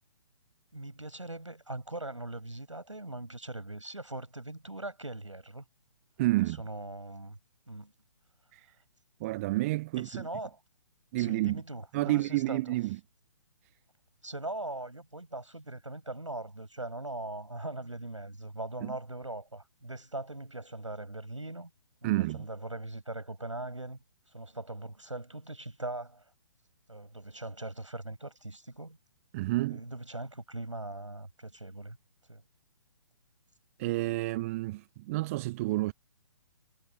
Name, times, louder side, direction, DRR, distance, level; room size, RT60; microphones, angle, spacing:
voice 1, 0.7-5.6 6.4-7.4 7.7-7.9 10.0-10.6 11.1-12.8 14.2-21.7 22.0-24.0 24.3-26.2 26.9-29.0 29.5-32.0 32.3-32.4, right 2 dB, 85° right, 7.8 m, -40 dB
voice 2, 6.2-6.6 8.5-8.6 9.2-10.1 11.1-11.6 11.9-13.0 18.8-18.9 22.0-22.4 29.3-29.8 33.8-35.9, right 19 dB, 30° right, 0.8 m, -29 dB
figure-of-eight pair, 130°, 15 cm